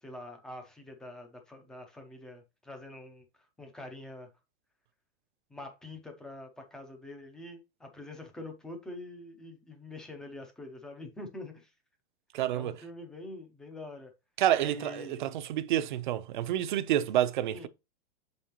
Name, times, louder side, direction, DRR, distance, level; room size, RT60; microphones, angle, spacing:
voice 1, 0.0-4.3 5.5-11.7 12.5-14.1 14.6-15.2 17.5-17.7, left 2 dB, ahead, 0.5 m, -45 dB
voice 2, 12.3-12.7 14.4-17.7, right 12 dB, 50° right, 0.6 m, -28 dB
7.4 x 5.3 x 2.9 m
supercardioid pair, 180°, 31 cm